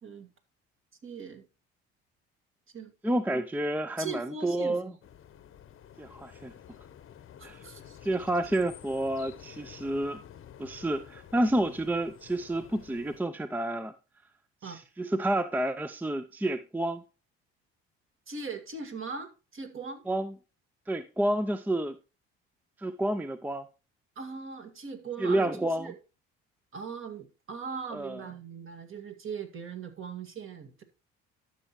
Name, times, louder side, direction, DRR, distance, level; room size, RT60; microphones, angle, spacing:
voice 1, 1.0-1.5 2.7-2.9 4.0-4.9 7.4-8.0 14.6-14.8 18.3-20.0 24.2-26.0 26.7-30.8, right 5 dB, 45° right, 2.0 m, -40 dB
voice 2, 3.0-4.9 6.0-6.5 7.4-7.6 8.0-10.2 10.6-13.9 14.6-17.0 20.1-20.3 20.9-22.0 22.8-23.7 25.2-25.9 27.9-28.2, right 1 dB, 5° right, 0.5 m, -29 dB
sound 1, 5.0-13.2, left 9 dB, 45° left, 0.9 m, -50 dB
12.5 x 6.3 x 3.0 m
hypercardioid pair, 70°, 30 cm